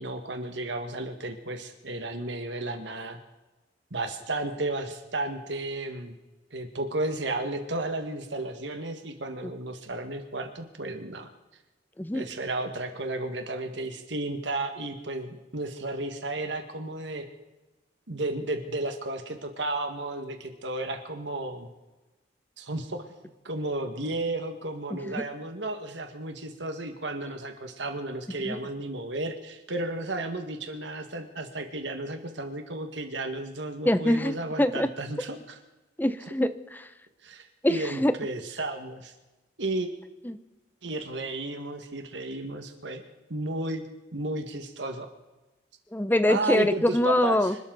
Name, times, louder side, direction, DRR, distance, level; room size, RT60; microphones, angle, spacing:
voice 1, 0.0-3.2 3.9-6.2 6.5-11.3 12.1-17.3 18.1-21.7 22.6-23.0 23.4-35.6 37.2-39.1 39.6-39.9 40.8-43.0 43.3-43.8 44.1-45.1 46.3-47.6, right 2 dB, 75° right, 6 dB, 1.8 m, -33 dB
voice 2, 24.9-25.2 28.4-28.6 33.8-34.9 36.0-36.9 37.6-38.1 40.2-40.4 45.9-47.6, left 1 dB, 10° left, 12 dB, 0.6 m, -24 dB
26.0 x 13.0 x 4.0 m, 1.1 s
head